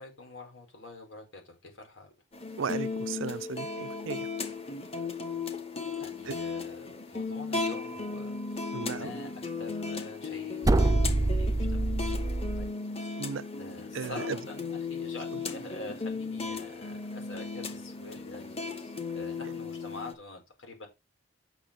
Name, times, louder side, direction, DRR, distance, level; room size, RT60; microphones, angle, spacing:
voice 1, 0.0-2.1 6.0-11.9 12.6-12.7 13.0-13.2 13.6-20.9, left 2 dB, 80° left, 5.2 m, -46 dB
sound 1, 2.3-20.1, left 4 dB, 30° left, 1.5 m, -36 dB
voice 2, 2.6-4.3 6.3-6.4 8.7-9.2 13.2-13.4 13.9-14.4 15.3-15.4, right 6 dB, 90° right, 0.5 m, -35 dB
sound 2, 10.6-12.7, right 2 dB, 15° right, 0.4 m, -25 dB
8.9 x 6.3 x 5.0 m
head